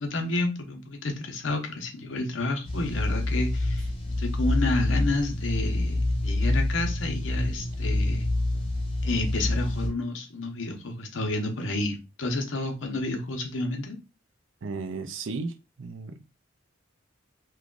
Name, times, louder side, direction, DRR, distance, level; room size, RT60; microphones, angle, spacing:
voice 1, 0.0-3.9 4.2-8.3 9.0-14.0, left 2 dB, 75° left, 0.8 m, -30 dB
sound 1, 2.6-9.9, left 1 dB, 30° left, 1.0 m, -27 dB
voice 2, 14.6-16.3, right 4 dB, 75° right, 0.5 m, -35 dB
3.1 x 2.3 x 3.7 m
head